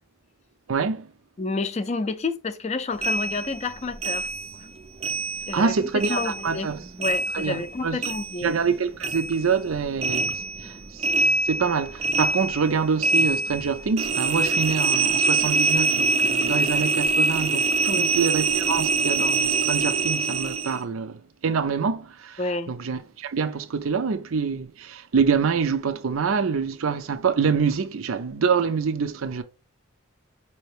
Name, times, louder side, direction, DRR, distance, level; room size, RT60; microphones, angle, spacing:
voice 1, 0.7-1.1 5.5-6.8 7.3-8.0 8.4-10.7 11.0-11.1 11.5-21.2 21.4-22.4 22.7-29.4, right 5 dB, 80° right, 0.6 m, -25 dB
voice 2, 1.4-4.3 4.6-4.7 5.5-6.7 7.0-8.5 17.9-18.1 22.4-22.7, left 3 dB, 30° left, 0.4 m, -29 dB
sound 1, 3.0-5.7 6.0-8.7 9.0-20.8, right 3 dB, 30° right, 0.4 m, -25 dB
5.3 x 2.9 x 3.2 m
head